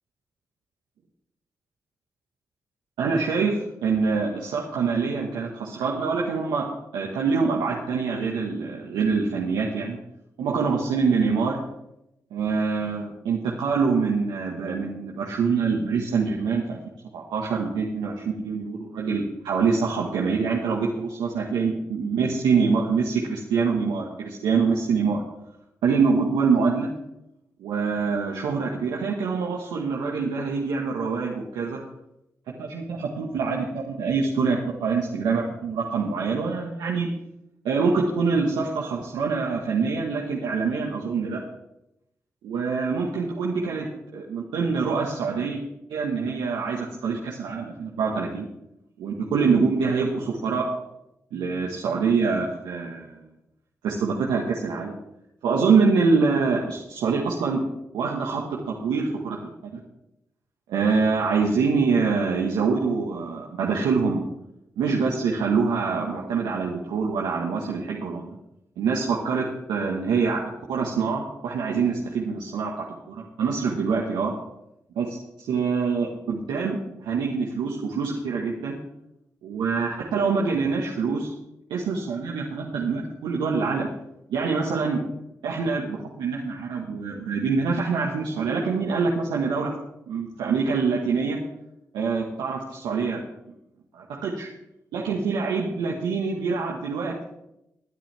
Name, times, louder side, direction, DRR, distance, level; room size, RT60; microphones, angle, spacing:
voice 1, 3.0-6.7 6.9-10.0 10.4-11.6 12.3-16.8 17.1-25.2 25.8-26.9 27.6-31.8 32.6-37.1 37.6-41.4 42.4-45.6 45.9-48.5 49.0-50.6 51.3-53.2 53.8-54.9 55.4-57.6 57.9-59.4 59.7-59.8 60.7-64.2 64.8-68.3 68.8-70.4 70.7-72.7 73.1-74.3 74.9-75.2 75.5-78.8 79.4-81.3 81.7-83.9 84.3-85.0 85.4-89.7 90.1-91.4 91.9-93.2 93.9-94.5 94.9-97.2, right 5 dB, 85° right, -2 dB, 1.5 m, -25 dB
20.5 x 8.9 x 3.4 m, 0.85 s
supercardioid pair, 40°, 7 cm